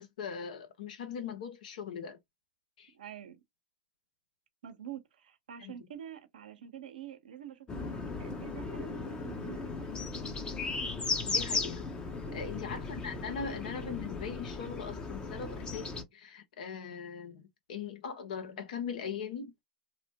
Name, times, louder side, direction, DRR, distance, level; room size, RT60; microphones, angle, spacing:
voice 1, 0.0-2.2 2.8-2.9 5.6-5.7 11.3-11.9 12.3-19.5, left 6 dB, 70° left, 1.0 m, -40 dB
voice 2, 2.9-3.4 4.6-9.9 12.2-12.6, right 10 dB, 80° right, 0.8 m, -47 dB
sound 1, 7.7-16.0, left 4 dB, 20° left, 0.8 m, -36 dB
3.0 x 2.1 x 2.8 m
hypercardioid pair, 110°, 5 cm